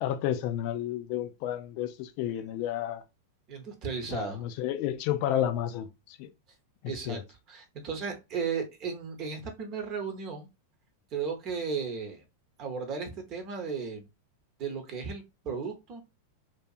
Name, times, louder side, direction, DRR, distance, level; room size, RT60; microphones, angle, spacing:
voice 1, 0.0-3.0 4.1-6.3 6.8-7.2, left 11 dB, 55° left, 0.3 m, -31 dB
voice 2, 3.5-4.4 6.8-7.2 7.5-10.5 11.1-12.2 12.6-14.1 14.6-16.0, right 5 dB, 45° right, 0.8 m, -35 dB
2.7 x 2.3 x 2.3 m
hypercardioid pair, 100°, 0 cm